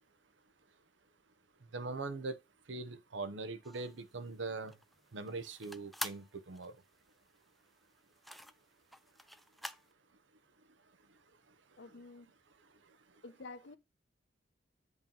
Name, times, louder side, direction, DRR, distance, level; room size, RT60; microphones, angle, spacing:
voice 1, 1.7-2.4 2.7-4.8 5.1-6.8 11.9-12.0, right 3 dB, 75° right, 0.8 m, -41 dB
sound 1, 3.6-9.9, equal, ahead, 0.3 m, -47 dB
voice 2, 11.8-12.3 13.2-13.8, left 3 dB, 65° left, 0.7 m, -49 dB
8.1 x 2.9 x 5.3 m
head